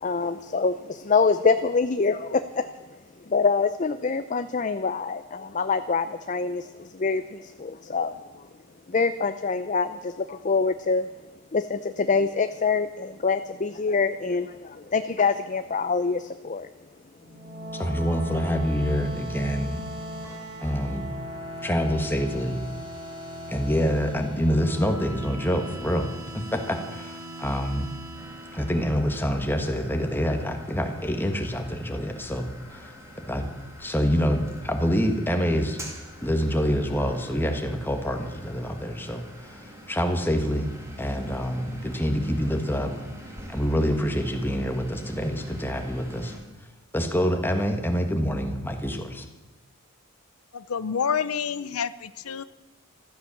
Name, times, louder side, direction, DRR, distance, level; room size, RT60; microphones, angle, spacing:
voice 1, 0.0-2.7 3.3-8.2 8.9-11.1 11.5-16.7, left 4 dB, 35° left, 10 dB, 0.5 m, -25 dB
sound 1, 17.2-29.6, equal, 70° right, 4.4 m, -38 dB
voice 2, 17.7-19.8 20.6-21.1 21.6-22.6 23.5-27.9 28.5-32.9 33.3-33.5 33.8-35.8 36.2-40.7 41.0-42.9 43.5-46.3 46.9-49.3, equal, 10° left, 5 dB, 1.5 m, -26 dB
sound 2, 28.1-46.4, equal, 15° right, 2.6 m, -45 dB
voice 3, 50.5-52.4, left 7 dB, 90° left, 15 dB, 0.6 m, -28 dB
15.0 x 13.0 x 7.2 m, 1.2 s
head